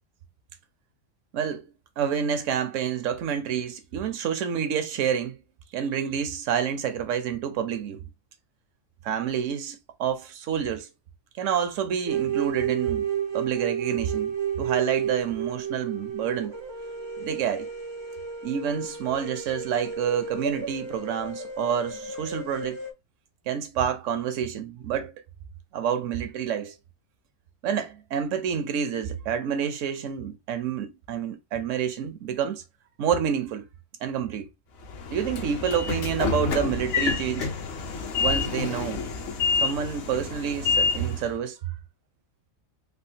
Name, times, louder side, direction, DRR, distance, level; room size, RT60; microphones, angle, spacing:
voice 1, 1.3-1.7 2.0-5.4 5.7-8.0 9.0-10.9 11.4-16.5 17.2-17.7 18.4-22.8 23.5-25.1 25.7-26.7 27.6-32.6 33.0-33.7 34.0-34.5 35.1-37.5 38.2-39.0 39.6-41.7, right 8 dB, 70° right, 0.9 m, -28 dB
sound 1, 12.1-22.9, right 7 dB, 35° right, 0.5 m, -32 dB
Train / Sliding door, 34.8-41.3, left 5 dB, 60° left, 0.8 m, -28 dB
3.5 x 2.2 x 2.6 m
omnidirectional pair, 1.4 m